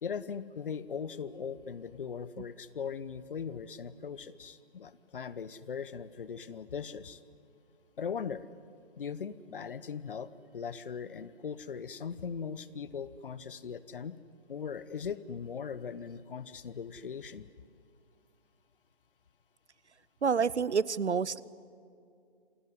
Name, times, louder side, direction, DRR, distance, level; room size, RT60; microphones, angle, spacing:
voice 1, 0.0-7.2 8.0-8.5 9.0-14.2 14.5-17.5, left 6 dB, 50° left, 17 dB, 1.0 m, -39 dB
voice 2, 20.2-21.4, right 6 dB, 85° right, 21 dB, 0.8 m, -28 dB
27.5 x 18.0 x 9.6 m, 2.5 s
figure-of-eight pair, 155°, 33 cm